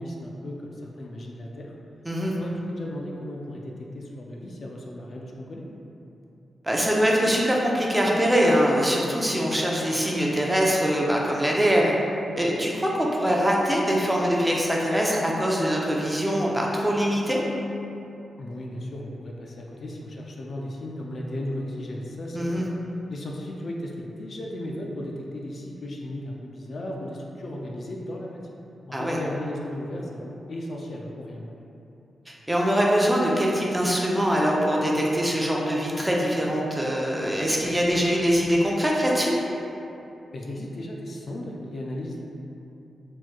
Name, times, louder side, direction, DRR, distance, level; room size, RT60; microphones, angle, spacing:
voice 1, 0.0-1.7 2.4-5.6 18.4-22.7 23.1-28.6 28.9-31.5 40.3-42.2, left 1 dB, 60° left, -1 dB, 0.4 m, -35 dB
voice 2, 6.6-11.9 12.4-17.4 22.3-22.6 28.9-29.2 32.3-39.3, equal, 10° right, -3 dB, 0.6 m, -23 dB
4.4 x 2.9 x 2.3 m, 2.8 s
cardioid pair, 70°, 0 cm